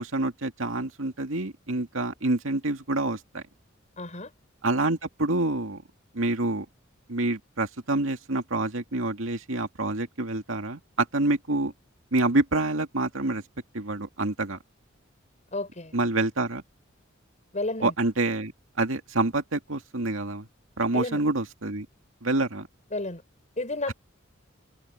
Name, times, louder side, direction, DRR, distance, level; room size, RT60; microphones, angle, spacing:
voice 1, 0.0-3.4 4.6-5.8 6.1-6.7 7.1-11.7 12.1-13.4 13.7-14.6 15.9-16.6 17.8-18.5 18.8-20.5 20.8-21.9 22.2-22.7 23.9-24.0, right 2 dB, 85° right, 2.3 m, -27 dB
voice 2, 4.0-4.3 15.5-15.9 17.5-17.9 20.9-21.2 22.9-23.2 23.6-23.9, left 2 dB, 35° left, 5.9 m, -31 dB
head